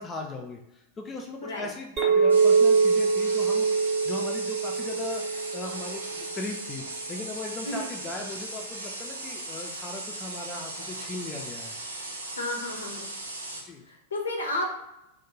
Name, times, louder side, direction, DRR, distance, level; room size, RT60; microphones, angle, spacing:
voice 1, 0.0-5.2 5.5-11.8 13.6-13.8, left 2 dB, 20° left, 1 dB, 0.4 m, -38 dB
Chink clink, 2.0-6.5, right 5 dB, 30° right, 0.6 m, -23 dB
sound 1, 2.3-13.6, right 2 dB, 80° right, 0.5 m, -38 dB
voice 2, 12.4-13.1 13.9-14.7, left 1 dB, 70° left, 1 dB, 0.6 m, -32 dB
2.5 x 2.1 x 3.0 m, 0.85 s
figure-of-eight pair, 90°, 0 cm